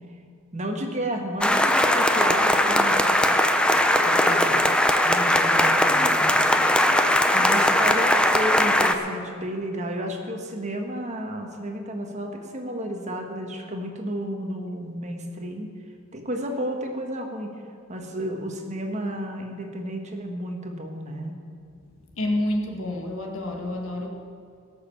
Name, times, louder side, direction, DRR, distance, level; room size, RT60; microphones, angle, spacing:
voice 1, 0.5-3.4 4.0-4.6 5.0-6.7 7.3-15.7 16.1-17.5 17.9-21.4, equal, 35° right, 3 dB, 1.5 m, -32 dB
sound 1, 1.4-8.9, left 1 dB, 5° left, 0.6 m, -20 dB
voice 2, 22.2-24.1, left 1 dB, 80° left, 1 dB, 2.0 m, -28 dB
17.5 x 6.7 x 7.3 m, 2.3 s
head